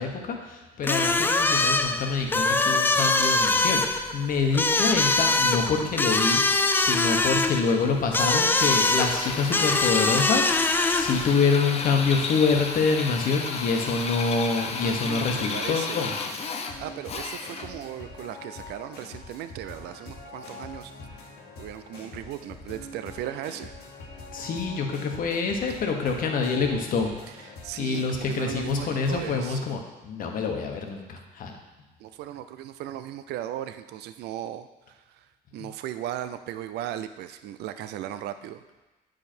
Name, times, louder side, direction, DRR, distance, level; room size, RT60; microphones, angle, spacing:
voice 1, 0.0-16.1 24.3-27.1 27.4-31.5 35.6-35.7, left 4 dB, 55° left, 3 dB, 1.2 m, -26 dB
sound 1, 0.8-11.3, left 3 dB, 10° left, 0.4 m, -23 dB
Drill, 8.6-17.8, left 4 dB, 40° left, 0.7 m, -33 dB
sound 2, 14.8-29.5, left 2 dB, 85° left, 1.8 m, -44 dB
voice 2, 14.8-16.1 16.8-21.3 21.6-23.7 27.3-27.4 27.6-29.6 32.0-35.3 35.5-38.6, right 12 dB, 75° right, 10 dB, 0.5 m, -37 dB
8.5 x 5.2 x 4.4 m, 1.1 s
cardioid pair, 110°, 17 cm